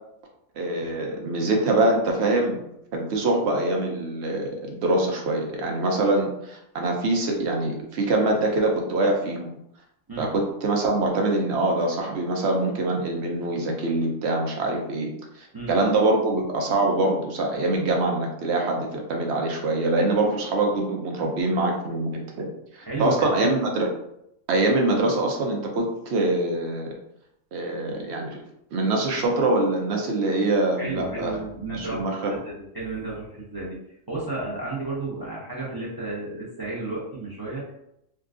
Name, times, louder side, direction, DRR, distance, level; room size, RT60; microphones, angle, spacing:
voice 1, 0.6-2.6 2.9-9.5 10.2-23.9 24.5-26.9 27.5-28.4 28.7-31.3 31.7-32.3, right 2 dB, 60° right, 1 dB, 0.8 m, -24 dB
voice 2, 22.8-23.5 30.8-32.0 32.3-33.8 34.1-37.7, right 2 dB, 30° right, -6 dB, 0.4 m, -32 dB
3.6 x 2.3 x 2.4 m, 0.79 s
omnidirectional pair, 1.4 m